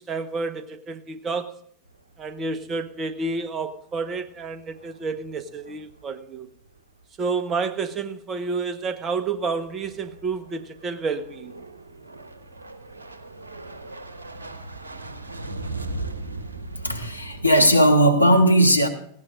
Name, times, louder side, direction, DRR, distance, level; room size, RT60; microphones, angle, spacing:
voice 1, 0.0-1.6 2.2-6.5 7.2-11.5, right 4 dB, 25° right, 1.3 m, -30 dB
sound 1, 1.8-2.8 3.1-3.5 3.9-6.3 6.6-7.0 9.1-17.6, right 2 dB, 80° right, 1.3 m, -39 dB
voice 2, 16.8-18.9, equal, 90° left, 1.4 m, -17 dB
18.5 x 16.5 x 2.6 m
figure-of-eight pair, 90°, 0 cm